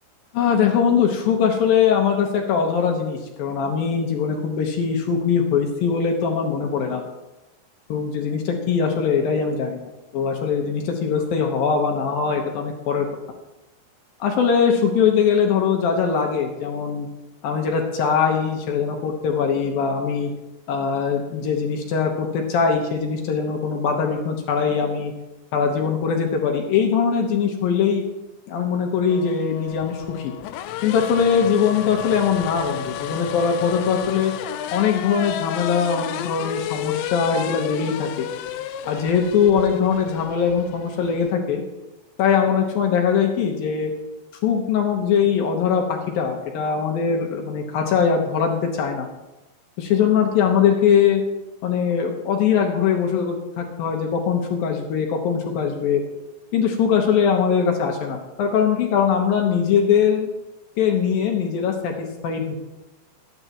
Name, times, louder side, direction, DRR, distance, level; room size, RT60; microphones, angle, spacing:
voice 1, 0.3-7.0 7.9-13.1 14.2-17.1 17.4-20.3 20.7-25.1 25.5-28.0 28.5-30.3 30.8-34.3 34.7-38.3 38.9-41.6 42.2-43.9 44.4-49.1 49.8-51.2 51.6-56.0 56.5-60.3 60.8-62.6, left 7 dB, 65° left, 2 dB, 2.6 m, -21 dB
sound 1, 29.1-41.3, left 11 dB, 85° left, 2.9 m, -32 dB
23.0 x 9.7 x 3.0 m, 0.99 s
omnidirectional pair, 5.3 m